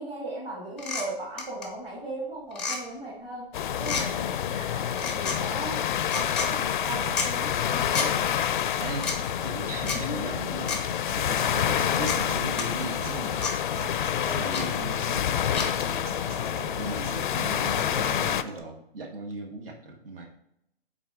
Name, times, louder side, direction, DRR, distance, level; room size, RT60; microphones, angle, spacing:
voice 1, 0.0-3.5 3.8-5.8 6.1-8.3 9.9-10.3 13.9-14.6 16.6-16.8, right 2 dB, 15° right, -5 dB, 1.1 m, -38 dB
sound 1, 0.8-1.0 1.4-1.7 2.5-2.8 3.8-4.0 4.9-5.4 6.0-6.5 7.2-7.3 7.9-8.1 9.0-9.2 9.9-10.0 10.7-10.8 11.4-11.5 12.1-12.2 12.6-12.7 13.4-13.5 14.5-14.6 15.5-15.7, left 4 dB, 5° left, 0.5 m, -30 dB
sound 2, 3.5-18.4, left 9 dB, 55° left, 0.4 m, -28 dB
voice 2, 8.8-13.4 14.3-15.8 16.7-20.3, right 2 dB, 65° right, 2 dB, 1.3 m, -38 dB
Human voice / Acoustic guitar, 10.6-18.6, right 3 dB, 85° right, 1.2 m, -42 dB
6.0 x 4.1 x 4.7 m, 0.80 s
hypercardioid pair, 150°, 30 cm